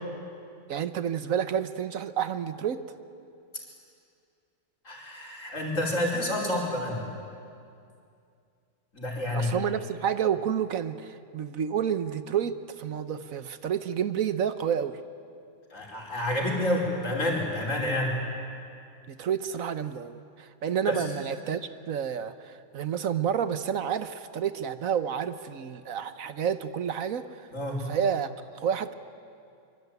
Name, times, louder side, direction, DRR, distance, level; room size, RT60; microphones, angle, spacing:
voice 1, 0.7-2.8 9.3-15.0 19.1-21.6 21.9-27.5 27.8-28.3 28.5-28.9, right 8 dB, 75° right, 11 dB, 1.3 m, -29 dB
voice 2, 4.9-7.0 8.9-9.5 15.7-18.2 20.8-21.0 27.5-27.9, left 1 dB, 60° left, -1 dB, 5.5 m, -29 dB
25.0 x 24.5 x 9.5 m, 2.4 s
omnidirectional pair, 1.5 m